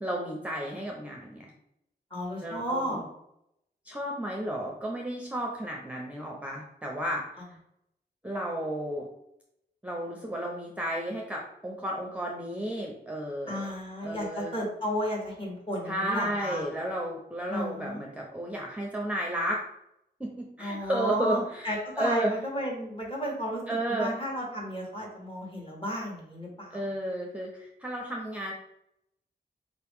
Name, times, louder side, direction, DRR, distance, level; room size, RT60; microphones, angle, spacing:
voice 1, 0.0-1.5 2.4-3.1 3.8-7.2 8.2-9.1 9.8-13.7 14.0-14.6 15.9-19.6 20.2-21.7 22.0-22.3 23.7-24.1 26.7-28.5, right 1 dB, 10° right, -1 dB, 0.7 m, -32 dB
voice 2, 2.1-3.0 7.4-7.5 13.5-16.6 17.5-18.0 20.6-23.6 23.9-26.8, equal, 30° left, -2 dB, 1.6 m, -33 dB
4.1 x 2.9 x 3.6 m, 0.79 s
wide cardioid pair, 75°, 18 cm